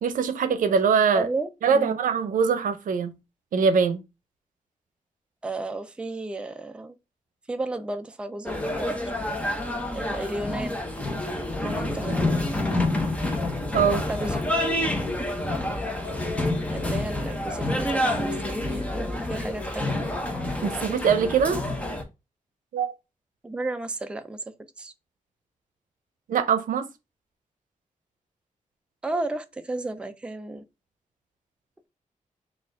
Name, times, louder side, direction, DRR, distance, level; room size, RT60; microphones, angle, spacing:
voice 1, 0.0-1.3 1.6-3.1 3.5-4.0 13.7-14.0 20.6-21.6 22.7-22.9 26.3-26.9, right 6 dB, 90° right, 0.5 m, -22 dB
voice 2, 1.1-2.0 5.4-7.0 7.5-9.0 9.9-10.8 11.6-12.4 14.1-14.4 16.7-19.9 23.4-24.4 24.8-24.9 29.0-30.6, right 2 dB, 10° right, 0.3 m, -33 dB
sound 1, 8.5-22.0, left 1 dB, 10° left, 0.7 m, -28 dB
4.2 x 2.4 x 3.6 m
wide cardioid pair, 155°, 13 cm